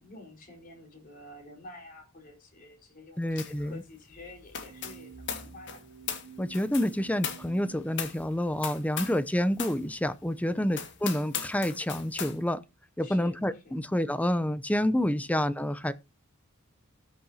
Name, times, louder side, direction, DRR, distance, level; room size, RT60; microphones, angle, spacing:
voice 1, 0.0-5.8 6.8-7.0 10.4-10.7 13.0-13.7, left 2 dB, 40° left, 4.6 m, -49 dB
voice 2, 3.2-3.8 6.4-12.6 13.0-15.9, left 1 dB, 5° left, 0.7 m, -28 dB
sound 1, 3.4-3.7 3.9-9.3 9.5-9.8 10.2-10.3 10.7-12.4, left 7 dB, 55° left, 2.0 m, -38 dB
sound 2, 4.6-7.8, right 8 dB, 70° right, 2.3 m, -51 dB
19.0 x 6.7 x 2.9 m
head